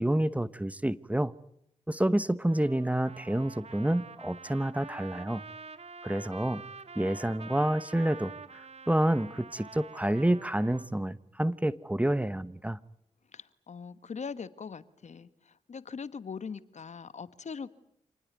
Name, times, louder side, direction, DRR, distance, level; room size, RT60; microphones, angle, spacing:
voice 1, 0.0-1.3 1.9-5.4 6.0-6.6 7.0-12.8, right 1 dB, 10° right, 1.1 m, -28 dB
Trumpet, 2.5-10.9, right 5 dB, 50° right, 1.6 m, -47 dB
voice 2, 13.3-17.7, left 5 dB, 60° left, 1.4 m, -41 dB
27.0 x 19.5 x 9.5 m
supercardioid pair, 45°, 13 cm